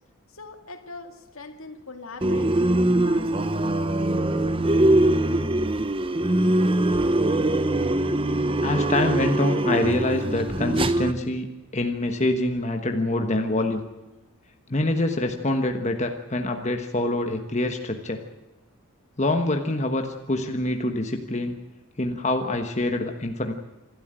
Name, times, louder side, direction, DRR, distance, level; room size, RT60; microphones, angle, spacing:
voice 1, 0.3-4.5, left 3 dB, 70° left, 6 dB, 2.3 m, -42 dB
sound 1, 2.2-11.1, right 1 dB, 25° right, 0.8 m, -22 dB
voice 2, 8.6-11.5 11.7-13.8 14.7-18.2 19.2-21.6 22.0-23.5, left 1 dB, 30° left, 5 dB, 1.3 m, -25 dB
26.5 x 12.5 x 8.9 m, 1.1 s
head